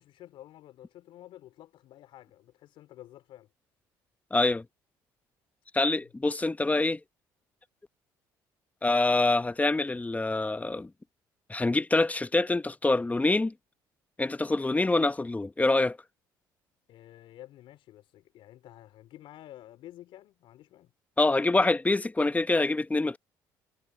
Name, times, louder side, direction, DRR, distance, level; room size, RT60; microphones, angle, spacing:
voice 1, 0.0-3.5 16.9-20.9, left 13 dB, 70° left, 3.7 m, -50 dB
voice 2, 4.3-4.6 5.7-7.0 8.8-10.9 11.5-13.5 14.2-16.0 21.2-23.2, left 2 dB, 15° left, 1.0 m, -25 dB
supercardioid pair, 65°, 9 cm